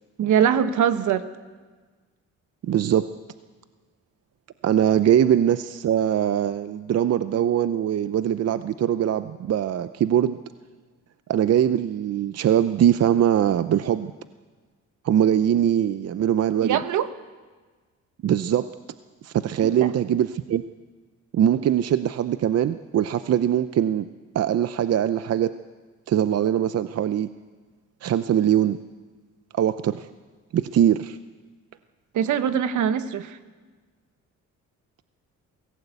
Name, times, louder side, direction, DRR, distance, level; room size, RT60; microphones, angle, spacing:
voice 1, 0.2-1.2 16.6-17.1 19.6-19.9 32.1-33.4, right 8 dB, 75° right, 11 dB, 1.3 m, -22 dB
voice 2, 2.6-3.1 4.6-10.4 11.3-14.1 15.0-16.8 18.2-18.7 19.2-20.6 21.3-24.0 24.3-25.5 26.1-27.3 28.0-28.8 29.5-30.1 30.5-31.2, right 10 dB, 55° right, 12 dB, 0.7 m, -22 dB
23.0 x 16.5 x 8.3 m, 1.4 s
cardioid pair, 90°, 30 cm